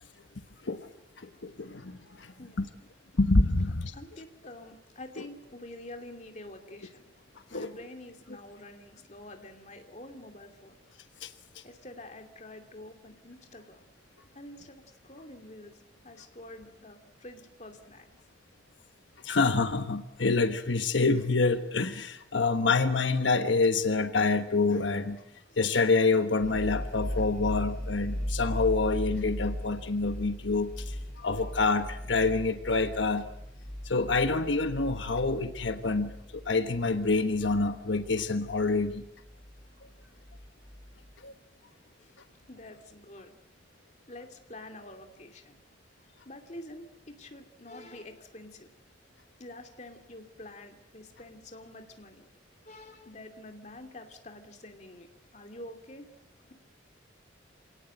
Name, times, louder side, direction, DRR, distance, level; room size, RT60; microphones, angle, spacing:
voice 1, 1.4-2.3 2.6-2.7 3.2-3.9 7.5-7.7 11.2-11.3 19.2-25.2 25.6-33.2 33.8-39.0 41.2-41.3, left 3 dB, 85° left, 8 dB, 1.2 m, -27 dB
voice 2, 2.4-2.9 3.9-7.0 7.5-10.8 11.6-13.8 14.3-15.8 16.0-18.1 42.0-42.1 42.5-43.3 44.1-45.5 46.3-48.7 49.4-52.2 52.7-55.1 55.3-56.1, left 1 dB, 40° left, 5 dB, 2.6 m, -47 dB
sound 1, 26.4-41.1, equal, 5° left, 6.2 m, -38 dB
27.0 x 18.0 x 7.8 m, 0.81 s
head